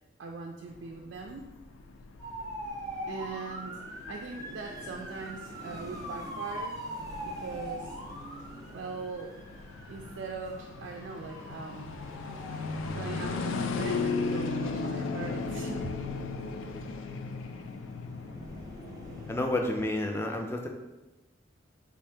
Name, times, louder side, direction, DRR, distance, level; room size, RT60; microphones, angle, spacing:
voice 1, 0.2-1.5 3.1-6.8 7.2-7.9 8.7-9.3 9.9-11.9 12.9-15.9, right 4 dB, 65° right, 1 dB, 0.3 m, -40 dB
sound 1, 0.7-19.7, left 4 dB, 85° left, 0.3 m, -37 dB
sound 2, 2.2-19.4, right 1 dB, 20° right, 0.7 m, -44 dB
voice 2, 19.3-20.7, left 1 dB, 15° left, 3 dB, 0.3 m, -30 dB
3.4 x 2.7 x 3.4 m, 1.0 s
head